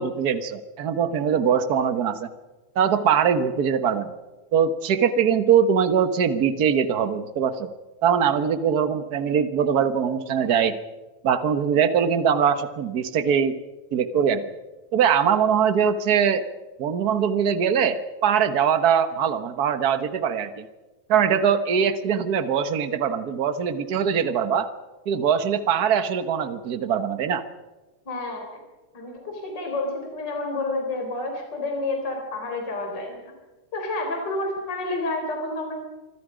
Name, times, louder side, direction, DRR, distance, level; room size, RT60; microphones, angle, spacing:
voice 1, 0.0-2.3 2.7-4.1 4.5-7.7 8.0-10.8 11.2-13.6 13.9-14.4 14.9-16.4 16.8-20.6 21.1-24.7 25.1-27.4, right 7 dB, 55° right, 10 dB, 1.0 m, -22 dB
voice 2, 28.1-28.5 28.9-33.3 33.7-35.7, left 2 dB, 35° left, 2 dB, 4.4 m, -29 dB
26.0 x 25.0 x 5.1 m, 1.2 s
omnidirectional pair, 3.5 m